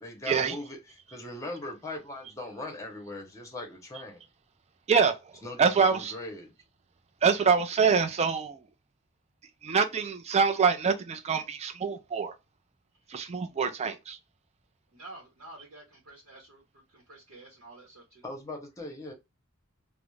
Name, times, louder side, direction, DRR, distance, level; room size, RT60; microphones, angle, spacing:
voice 1, 0.0-4.2 5.4-6.5 18.2-19.1, left 1 dB, 15° left, 0.8 m, -40 dB
voice 2, 5.6-6.1 7.2-8.6 9.6-12.3 13.1-14.2, right 5 dB, 30° right, 0.4 m, -25 dB
voice 3, 14.9-16.6 16.9-18.2, right 2 dB, 80° right, 0.9 m, -49 dB
2.4 x 2.0 x 3.0 m
head